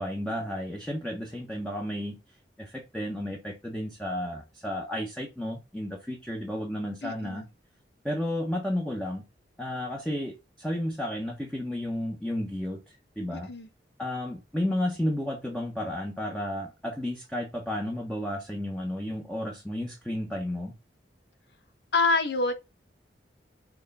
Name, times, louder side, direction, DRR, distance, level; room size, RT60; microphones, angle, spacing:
voice 1, 0.0-2.2 2.6-7.4 8.0-9.2 9.6-12.8 13.2-13.5 14.0-20.7, left 1 dB, 5° left, 1.2 m, -32 dB
voice 2, 7.0-7.5 13.5-13.7 21.9-22.5, left 3 dB, 70° left, 1.3 m, -26 dB
6.6 x 3.8 x 5.6 m
head